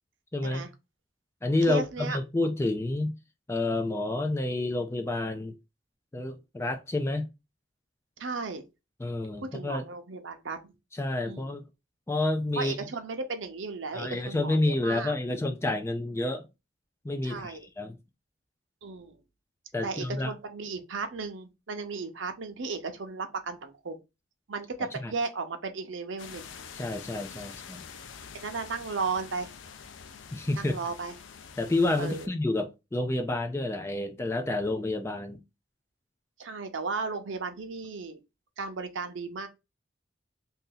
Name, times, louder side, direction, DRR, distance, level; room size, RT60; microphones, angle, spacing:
voice 1, 0.3-0.7 1.4-3.1 3.5-5.5 6.1-7.3 9.0-9.9 11.0-11.6 12.1-12.8 13.9-16.5 17.0-18.0 19.7-20.3 25.0-25.1 26.8-27.8 30.3-30.8 31.6-35.4, left 2 dB, 15° left, 0.3 m, -29 dB
voice 2, 1.7-2.2 8.2-8.6 9.4-10.7 11.3-11.5 12.6-15.2 17.2-17.7 18.8-19.2 19.8-24.0 24.5-26.5 27.4-27.5 28.3-29.5 30.6-31.1 32.0-32.3 36.4-38.2 38.6-39.5, right 4 dB, 80° right, 0.6 m, -35 dB
sound 1, 26.2-32.3, left 6 dB, 80° left, 0.4 m, -46 dB
2.8 x 2.6 x 3.8 m
head